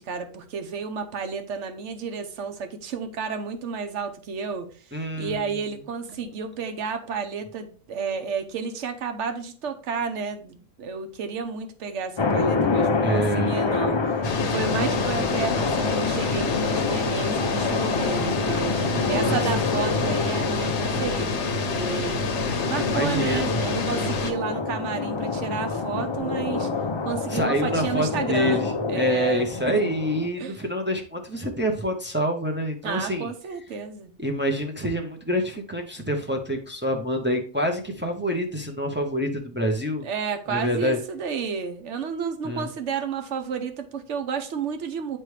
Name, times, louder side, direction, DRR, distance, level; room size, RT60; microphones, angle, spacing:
voice 1, 0.0-22.3 22.7-26.7 27.0-29.8 30.4-30.6 32.8-34.1 40.0-45.2, right 5 dB, 65° right, 7 dB, 1.1 m, -32 dB
voice 2, 4.9-5.4 13.0-13.6 18.7-19.4 22.8-23.6 27.3-28.6 28.9-33.3 34.2-40.1 40.5-41.0 42.4-42.7, equal, 10° right, 2 dB, 0.6 m, -26 dB
sound 1, 12.2-30.3, left 4 dB, 40° left, 0.4 m, -27 dB
sound 2, 14.2-24.3, left 3 dB, 60° left, 1.1 m, -28 dB
9.3 x 3.3 x 3.2 m, 0.41 s
omnidirectional pair, 1.4 m